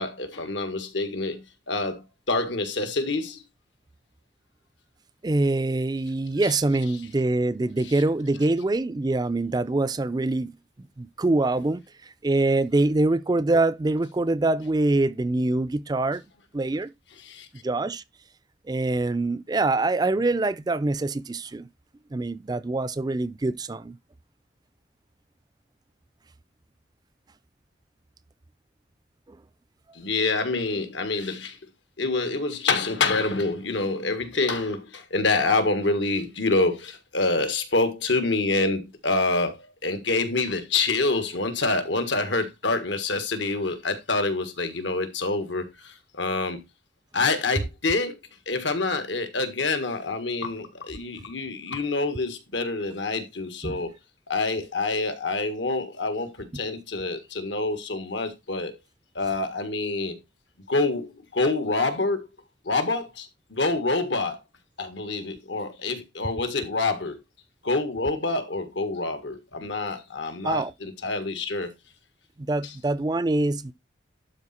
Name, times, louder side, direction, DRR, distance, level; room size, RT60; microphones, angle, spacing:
voice 1, 0.0-3.4 6.4-6.5 7.8-7.9 17.2-17.5 30.0-31.6 32.0-46.6 47.1-48.2 48.5-53.9 54.3-58.7 59.2-60.2 60.7-62.3 62.7-64.4 64.8-67.2 67.6-71.7 72.6-72.7, left 3 dB, 80° left, 1.7 m, -27 dB
voice 2, 5.2-10.5 11.0-11.8 12.2-16.2 16.5-16.9 17.6-18.0 18.7-21.7 22.1-24.0 53.6-53.8 70.4-70.7 72.4-73.7, right 2 dB, 20° right, 0.4 m, -24 dB
12.0 x 4.4 x 4.3 m
head